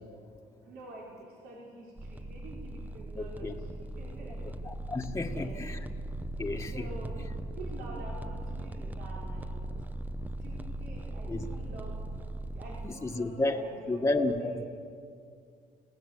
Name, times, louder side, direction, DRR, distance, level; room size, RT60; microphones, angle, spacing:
voice 1, 0.7-4.5 5.2-5.6 6.7-7.2 7.5-9.8 10.4-12.0 12.6-14.7, right 2 dB, 70° right, -3 dB, 4.8 m, -47 dB
sound 1, 2.0-12.9, right 1 dB, 10° right, 0.8 m, -39 dB
voice 2, 3.2-3.5 4.6-5.8 6.4-6.9 11.3-11.5 12.8-13.6 13.9-14.6, left 2 dB, 15° left, 2 dB, 1.7 m, -31 dB
29.5 x 18.0 x 8.1 m, 2.3 s
cardioid pair, 110°, 17 cm